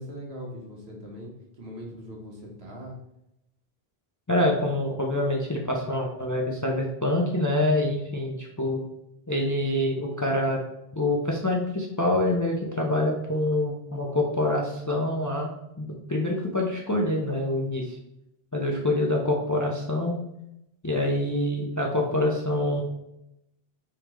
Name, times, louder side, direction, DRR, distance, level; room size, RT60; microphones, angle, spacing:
voice 1, 0.0-2.9, equal, 80° right, -2 dB, 1.4 m, -40 dB
voice 2, 4.3-8.8 9.3-10.6 10.9-18.0 18.5-20.1 20.8-22.8, left 1 dB, 30° left, 0 dB, 0.4 m, -26 dB
4.7 x 3.5 x 3.0 m, 0.85 s
omnidirectional pair, 1.0 m